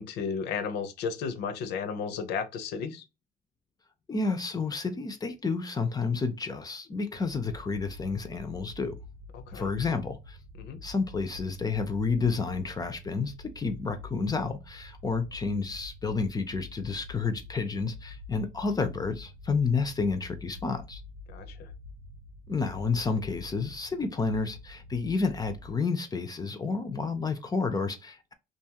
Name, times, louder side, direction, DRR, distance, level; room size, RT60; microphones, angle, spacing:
voice 1, 0.0-3.0 9.3-9.7 10.6-10.8 21.3-21.7, left 6 dB, 80° left, 0.6 m, -34 dB
voice 2, 4.1-9.0 9.5-10.4 10.8-21.0 22.5-28.3, left 4 dB, 20° left, 0.4 m, -30 dB
sound 1, 7.1-25.7, left 2 dB, 90° right, 0.8 m, -46 dB
2.6 x 2.3 x 2.8 m
cardioid pair, 110°, 17 cm